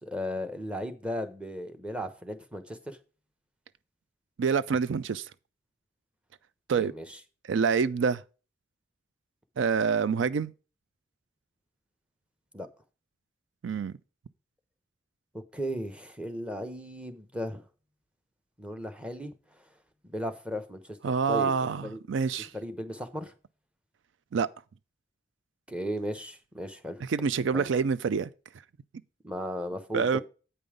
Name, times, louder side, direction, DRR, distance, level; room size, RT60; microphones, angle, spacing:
voice 1, 0.0-3.0 6.8-7.0 12.5-12.7 15.3-17.6 18.6-19.6 20.0-21.0 21.3-22.0 22.5-23.3 25.7-27.0 27.5-27.7 29.2-30.2, equal, 5° right, 0.9 m, -36 dB
voice 2, 4.4-5.3 6.7-6.9 7.5-8.2 9.6-10.5 13.6-14.0 21.0-22.5 24.3-24.5 27.0-28.3 29.9-30.2, right 6 dB, 75° right, 0.4 m, -26 dB
8.6 x 5.4 x 5.0 m
head